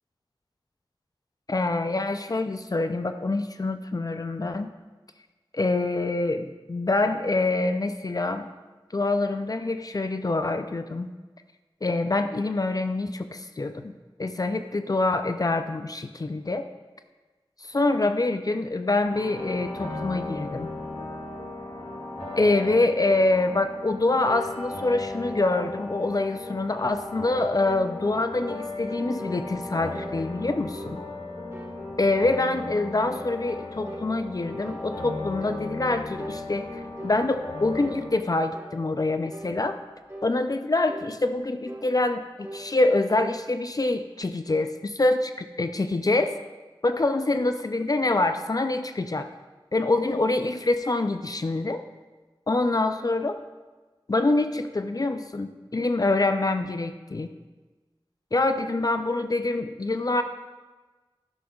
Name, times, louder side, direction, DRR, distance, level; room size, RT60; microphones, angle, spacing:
voice 1, 1.5-4.7 5.5-8.5 8.9-11.1 11.8-13.9 14.2-16.7 17.6-20.7 22.4-31.0 32.0-39.8 40.2-46.3 46.8-49.3 49.7-51.8 52.5-53.4 54.1-57.3 58.3-60.2, left 2 dB, 40° left, 8 dB, 0.4 m, -25 dB
sound 1, 19.1-38.1, left 2 dB, 80° left, 1.9 m, -36 dB
sound 2, 27.6-27.9 28.4-28.6 29.2-29.4 29.9-30.2 30.7-31.0 31.5-31.8 32.3-32.5 33.1-34.1 34.6-34.9 35.4-35.7 36.2-36.4 37.0-37.2 37.7-38.0 38.5-38.8 39.3-39.6 40.1-40.3 40.9-41.1 41.7-41.9 42.4-42.7, right 1 dB, 25° right, 1.4 m, -40 dB
11.5 x 6.4 x 2.3 m, 1.2 s
wide cardioid pair, 50°, 9 cm